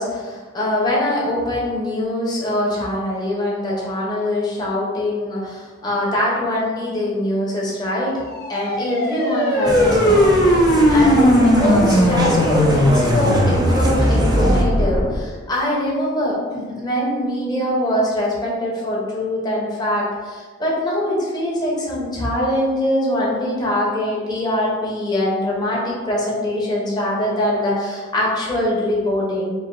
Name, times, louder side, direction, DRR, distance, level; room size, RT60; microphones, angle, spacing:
voice 1, 0.0-8.2 8.5-29.5, left 1 dB, 20° left, -5 dB, 1.1 m, -23 dB
sound 1, 8.2-15.2, equal, 50° left, 0.9 m, -17 dB
sound 2, 9.6-14.6, equal, 20° right, 0.5 m, -24 dB
5.0 x 2.1 x 3.9 m, 1.4 s
head